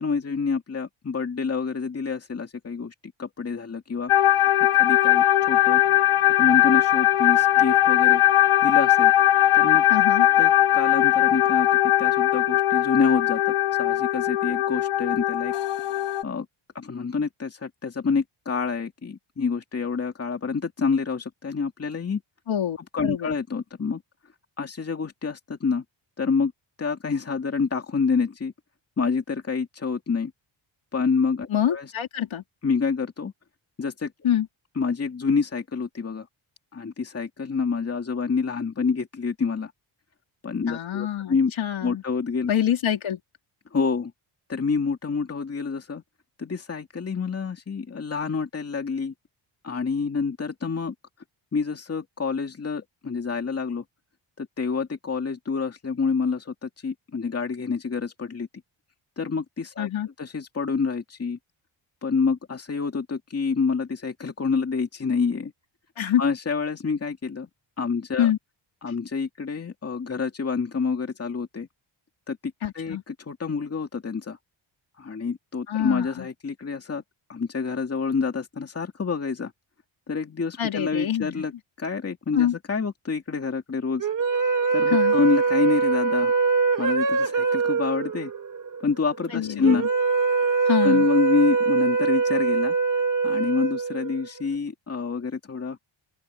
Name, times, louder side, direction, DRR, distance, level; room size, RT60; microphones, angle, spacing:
voice 1, 0.0-2.9 3.2-4.1 4.6-5.8 6.4-8.2 8.6-9.1 9.5-9.8 10.4-11.7 12.0-15.5 16.2-16.5 16.7-22.2 22.9-24.0 24.6-25.8 26.2-26.5 26.8-28.5 29.0-30.3 30.9-31.9 32.6-33.3 33.8-34.1 34.8-36.3 36.7-39.7 40.4-41.5 41.8-42.5 43.7-44.1 44.5-46.0 46.4-49.1 49.6-50.9 51.5-53.8 54.4-58.5 59.2-59.9 60.2-61.4 62.0-65.5 66.2-67.5 67.8-68.3 68.8-71.7 72.3-74.4 75.0-77.0 77.3-79.5 80.1-81.5 81.8-84.1 84.7-86.3 86.8-88.3 88.8-89.9 90.8-92.8 93.2-95.8, left 5 dB, 30° left, 2.6 m, -27 dB
sound 1, 4.1-16.2, left 13 dB, 85° left, 1.3 m, -20 dB
voice 2, 9.9-10.3 22.5-22.8 23.0-23.4 31.5-32.4 34.2-34.5 40.7-42.0 42.5-43.2 59.8-60.1 66.0-66.2 68.2-68.4 72.6-73.0 75.7-76.3 80.6-81.4 82.3-82.6 84.9-85.2 89.3-89.9 90.7-91.1, left 10 dB, 65° left, 3.7 m, -25 dB
sound 2, 84.0-94.4, right 4 dB, 40° right, 1.8 m, -23 dB
open air
wide cardioid pair, 150°, 50 cm